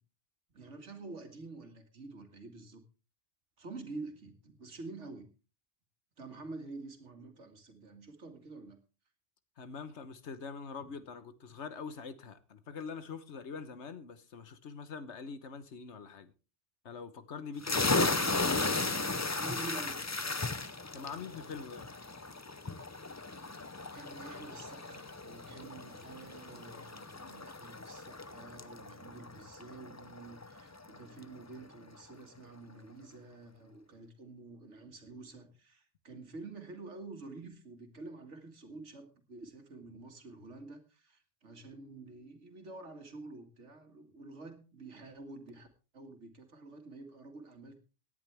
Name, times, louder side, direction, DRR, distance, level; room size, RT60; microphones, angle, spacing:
voice 1, 0.5-2.8 3.6-5.3 6.2-8.8 17.8-18.9 19.3-20.1 23.9-45.7 45.9-47.8, right 3 dB, 80° right, 2.4 m, -48 dB
voice 2, 9.6-16.3 16.8-18.0 20.9-21.9, left 5 dB, 70° left, 1.4 m, -44 dB
sound 1, 17.6-31.0, left 3 dB, 20° left, 0.4 m, -36 dB
18.0 x 10.0 x 3.4 m
omnidirectional pair, 1.2 m